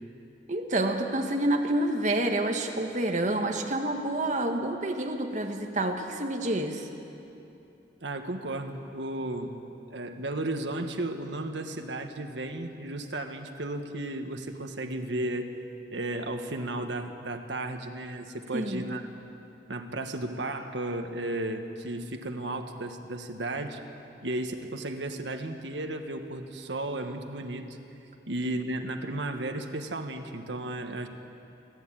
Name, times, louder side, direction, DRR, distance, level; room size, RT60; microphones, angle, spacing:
voice 1, 0.5-6.9 18.5-18.9, right 1 dB, 45° right, 3 dB, 1.7 m, -28 dB
voice 2, 8.0-9.5 9.9-15.5 15.9-19.1 19.7-23.8 24.2-27.7 28.3-31.1, right 1 dB, 85° right, 6 dB, 1.5 m, -34 dB
28.5 x 11.0 x 8.8 m, 2.9 s
head